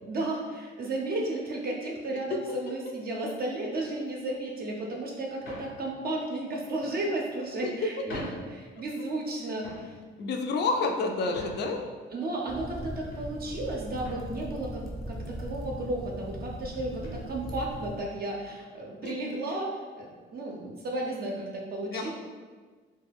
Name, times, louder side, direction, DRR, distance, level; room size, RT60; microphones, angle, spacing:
voice 1, 0.0-9.9 12.1-22.1, right 2 dB, 50° right, -2 dB, 0.5 m, -33 dB
sound 1, 3.8-4.1 4.8-4.9 5.4-5.8 6.8-7.3 7.8-7.9 8.1-8.5 8.9-9.3 9.6-9.9 10.5-11.8 12.4-13.2 13.5-13.7 14.0-14.4 15.2-15.3 15.6-15.8 17.0-17.2, left 1 dB, 85° left, 0.8 m, -45 dB
voice 2, 10.2-11.8 19.0-19.1 21.9-22.1, left 3 dB, 60° left, 4 dB, 0.4 m, -29 dB
sound 2, 12.5-18.0, right 1 dB, ahead, 0.5 m, -39 dB
2.2 x 2.2 x 3.4 m, 1.4 s
cardioid pair, 90°, 20 cm